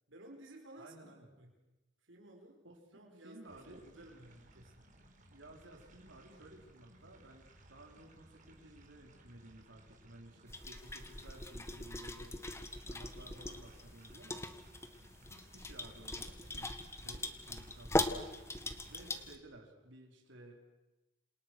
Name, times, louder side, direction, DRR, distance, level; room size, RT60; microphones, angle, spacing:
voice 1, 0.1-1.1 1.4-1.5 2.0-2.6 2.9-4.8, right 1 dB, 90° right, 2 dB, 4.9 m, -55 dB
voice 2, 0.8-1.3 2.6-2.8 3.2-3.9 5.3-14.4 15.3-18.3 18.9-20.6, right 1 dB, 70° right, 0 dB, 5.0 m, -56 dB
sound 1, 3.5-19.2, right 1 dB, 45° right, 4.7 m, -61 dB
sound 2, 10.5-19.4, left 2 dB, 15° left, 1.8 m, -40 dB
29.0 x 28.0 x 6.4 m, 0.99 s
head